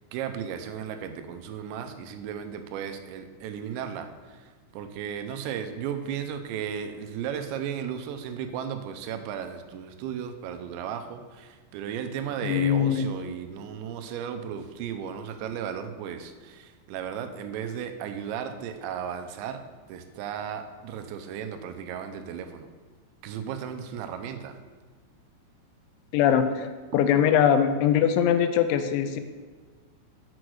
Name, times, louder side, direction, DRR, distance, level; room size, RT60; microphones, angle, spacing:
voice 1, 0.1-4.4 4.7-19.6 19.9-22.7 23.2-24.5, right 8 dB, 80° right, 7 dB, 2.9 m, -35 dB
voice 2, 12.4-13.1 26.1-26.7 26.9-29.2, left 9 dB, 85° left, 9 dB, 3.0 m, -22 dB
7.0 x 6.1 x 6.3 m, 1.4 s
omnidirectional pair, 5.2 m